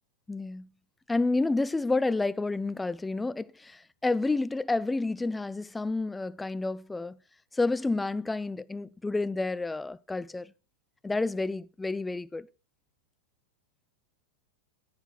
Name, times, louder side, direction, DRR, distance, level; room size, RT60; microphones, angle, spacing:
voice 1, 0.3-0.7 1.1-7.2 7.5-10.5 11.0-12.5, left 3 dB, 10° left, 0.4 m, -30 dB
14.5 x 8.1 x 2.4 m
figure-of-eight pair, 90°, 0 cm